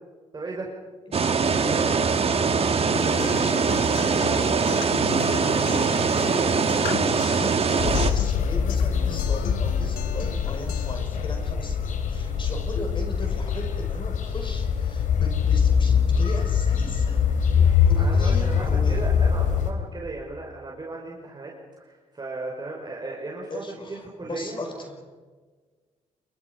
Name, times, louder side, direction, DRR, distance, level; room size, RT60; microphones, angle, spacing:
voice 1, 0.3-0.7 1.7-2.0 10.2-10.4 12.2-12.5 17.6-17.7 18.0-23.6 23.9-24.8, right 2 dB, 30° right, -2 dB, 5.4 m, -36 dB
voice 2, 1.1-19.1 23.5-25.0, left 1 dB, 35° left, 4 dB, 5.9 m, -38 dB
sound 1, 1.1-8.1, right 5 dB, 45° right, 2.0 m, -22 dB
Acoustic guitar, 3.0-10.9, left 10 dB, 90° left, 1.1 m, -36 dB
sound 2, 7.8-19.7, left 7 dB, 70° left, 3.4 m, -23 dB
28.5 x 23.5 x 5.4 m, 1.4 s
supercardioid pair, 65°, 14 cm